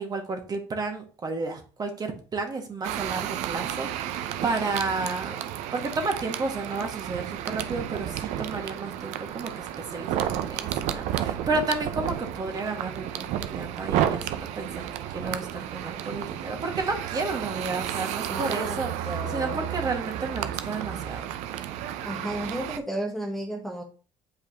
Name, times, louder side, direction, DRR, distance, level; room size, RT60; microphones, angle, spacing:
voice 1, 0.0-14.9 15.1-21.3, right 3 dB, 35° right, 4 dB, 1.6 m, -32 dB
sound 1, 2.8-22.8, right 11 dB, 80° right, 0.6 m, -32 dB
voice 2, 18.3-19.8 22.0-23.8, right 1 dB, ahead, 0 dB, 1.0 m, -33 dB
8.3 x 4.8 x 3.0 m, 0.38 s
cardioid pair, 100°, 12 cm